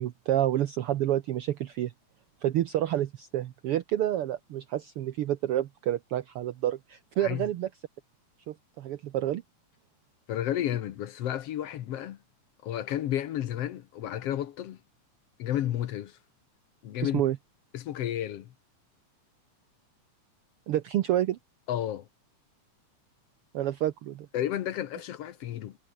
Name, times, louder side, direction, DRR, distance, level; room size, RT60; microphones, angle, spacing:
voice 1, 0.0-1.9 2.4-7.7 8.5-9.4 17.0-17.4 20.7-21.4 23.5-24.3, right 12 dB, 80° right, 1.3 m, -29 dB
voice 2, 10.3-12.2 12.6-14.8 15.4-16.2 16.8-17.2 17.7-18.5 21.7-22.1 24.3-25.8, left 11 dB, 65° left, 1.7 m, -32 dB
omnidirectional pair, 3.7 m